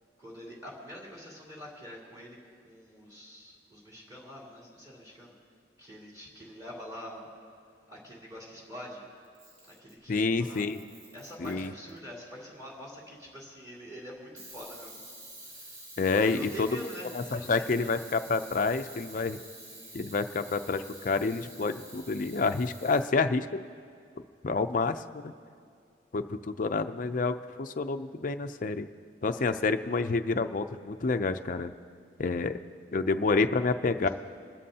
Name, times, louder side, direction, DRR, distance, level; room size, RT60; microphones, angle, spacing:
voice 1, 0.2-2.4 2.6-5.4 5.8-7.2 7.9-9.0 9.7-10.6 11.1-15.0 15.4-15.8 16.2-17.9 19.7-20.0 34.0-34.1, equal, 20° right, -5 dB, 3.2 m, -45 dB
Camera, 9.2-10.0 10.4-12.0 14.4-23.1, right 1 dB, 45° right, 3.9 m, -48 dB
voice 2, 10.1-10.8 11.4-11.7 16.0-16.8 17.1-19.4 19.9-23.6 24.4-25.3 26.1-28.9 29.2-31.7 32.2-32.6 32.9-34.1, left 4 dB, 50° left, 8 dB, 0.5 m, -28 dB
26.0 x 13.0 x 2.8 m, 2.4 s
head